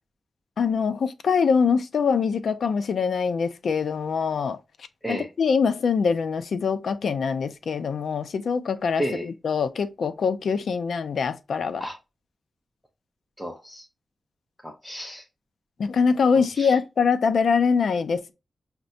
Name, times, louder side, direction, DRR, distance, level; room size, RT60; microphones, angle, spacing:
voice 1, 0.6-4.6 5.1-11.9 15.8-18.3, left 5 dB, 85° left, 0.5 m, -24 dB
voice 2, 9.0-9.3 11.8-12.0 13.4-13.8 14.6-15.2 16.6-16.8, equal, 5° left, 0.6 m, -32 dB
5.9 x 2.2 x 2.6 m
wide cardioid pair, 120°, 0 cm